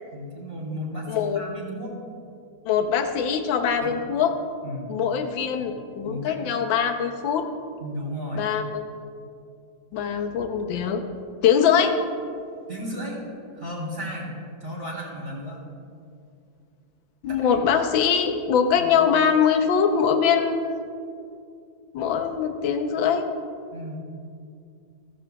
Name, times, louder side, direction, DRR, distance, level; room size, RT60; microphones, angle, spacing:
voice 1, 0.1-1.9 3.8-3.9 4.6-4.9 6.0-6.4 7.8-8.5 12.7-14.3 14.6-15.6 17.3-17.6 18.7-18.9 23.7-24.0, equal, 25° right, -4 dB, 3.3 m, -34 dB
voice 2, 1.1-1.4 2.6-4.3 4.9-7.5 8.4-8.8 9.9-11.0 11.4-12.0 17.2-20.9 21.9-23.2, left 7 dB, 85° left, 5 dB, 1.5 m, -22 dB
15.5 x 14.0 x 2.3 m, 2.4 s
omnidirectional pair, 2.1 m